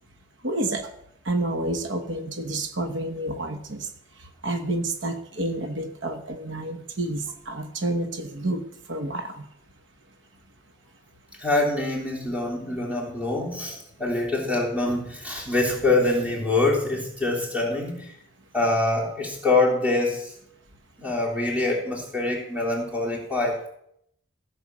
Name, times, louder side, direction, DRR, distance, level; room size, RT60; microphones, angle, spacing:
voice 1, 0.4-0.9 1.2-3.9 4.2-9.5, right 2 dB, 75° right, 6 dB, 1.2 m, -29 dB
voice 2, 11.4-18.1 18.5-20.3 21.0-23.6, left 2 dB, 5° right, -3 dB, 3.4 m, -25 dB
15.5 x 7.2 x 6.1 m, 0.72 s
head